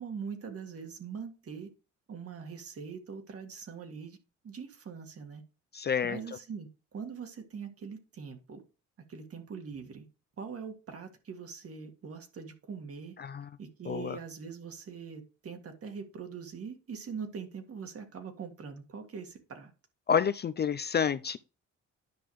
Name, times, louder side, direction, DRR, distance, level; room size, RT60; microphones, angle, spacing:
voice 1, 0.0-1.7 2.1-4.2 4.4-5.4 6.0-8.6 9.1-10.1 10.4-13.2 13.6-19.7, right 6 dB, 50° right, 1.8 m, -42 dB
voice 2, 5.7-6.2 13.2-13.5 13.9-14.2 20.1-21.4, left 7 dB, 35° left, 0.4 m, -29 dB
10.5 x 5.7 x 3.1 m
cardioid pair, 90°, 30 cm